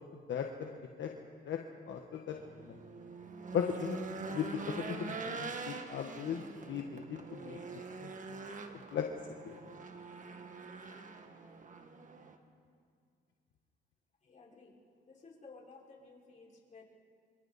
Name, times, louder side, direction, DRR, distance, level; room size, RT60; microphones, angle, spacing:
voice 1, 0.3-1.1 1.4-1.6 1.9-2.8 3.5-6.4 6.7-7.6 8.0-8.4 8.9-9.0 9.4-9.5, left 8 dB, 65° left, 2 dB, 1.4 m, -37 dB
Race car auto racing / Engine, 2.3-12.4, right 4 dB, 40° right, 1.9 m, -44 dB
voice 2, 14.2-14.7 15.0-16.8, left 4 dB, 40° left, -4 dB, 5.7 m, -55 dB
29.5 x 26.0 x 4.3 m, 2.2 s
cardioid pair, 90°, 20 cm